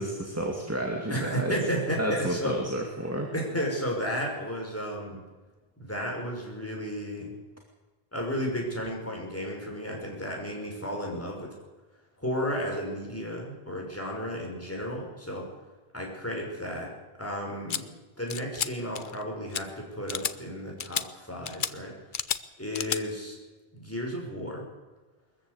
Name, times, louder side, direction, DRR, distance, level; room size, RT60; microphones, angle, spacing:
voice 1, 0.0-1.5 2.0-3.3, right 1 dB, 15° right, 1 dB, 2.3 m, -31 dB
voice 2, 1.1-2.5 3.3-5.2 5.8-7.3 8.1-11.5 12.2-15.5 15.9-16.9 17.2-22.0 22.6-23.4 23.7-24.7, equal, 15° left, -1 dB, 5.5 m, -33 dB
sound 1, 17.7-17.8 18.3-18.7 18.9-19.2 19.5-19.6 20.1-20.3 20.8-21.0 21.5-21.7 22.1-22.4 22.7-23.0, left 7 dB, 55° left, 0.9 m, -31 dB
22.5 x 14.5 x 8.1 m, 1.3 s
omnidirectional pair, 1.1 m